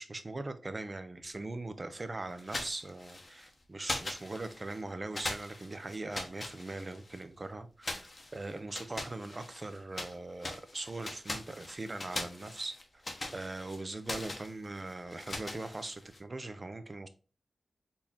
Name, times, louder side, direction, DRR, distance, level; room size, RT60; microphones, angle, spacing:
voice 1, 0.0-13.0 13.3-17.1, right 2 dB, 35° right, 0.6 m, -41 dB
sound 1, 2.4-3.5 3.8-4.8 5.1-7.2 7.8-10.1 10.4-16.2, left 2 dB, 40° left, 0.9 m, -41 dB
4.2 x 3.6 x 2.9 m
wide cardioid pair, 85°, 0 cm